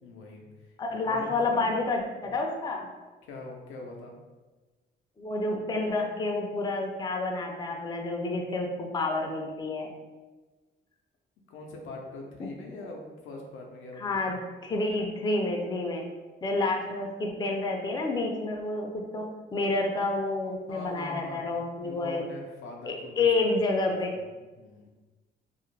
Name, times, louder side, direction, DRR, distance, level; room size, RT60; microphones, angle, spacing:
voice 1, 0.0-1.6 3.2-4.2 11.5-14.2 16.7-16.8 20.7-21.5 21.8-23.3 23.8-24.9, left 2 dB, 85° left, 0 dB, 0.5 m, -43 dB
voice 2, 0.8-2.9 5.2-9.9 12.4-12.5 14.0-14.4 14.6-16.1 16.4-22.2 22.9-24.1, left 2 dB, 20° left, 1 dB, 0.4 m, -29 dB
2.4 x 2.0 x 3.1 m, 1.3 s
cardioid pair, 90°, 20 cm